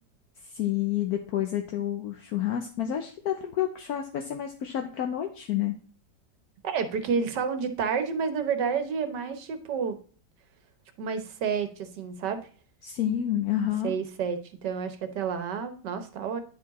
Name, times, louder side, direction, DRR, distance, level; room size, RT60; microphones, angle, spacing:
voice 1, 0.5-5.7 12.8-13.9, left 11 dB, 70° left, 4 dB, 1.2 m, -29 dB
voice 2, 6.6-10.0 11.0-12.5 13.8-16.4, right 6 dB, 90° right, 9 dB, 1.6 m, -30 dB
10.5 x 4.6 x 4.1 m, 0.41 s
omnidirectional pair, 1.8 m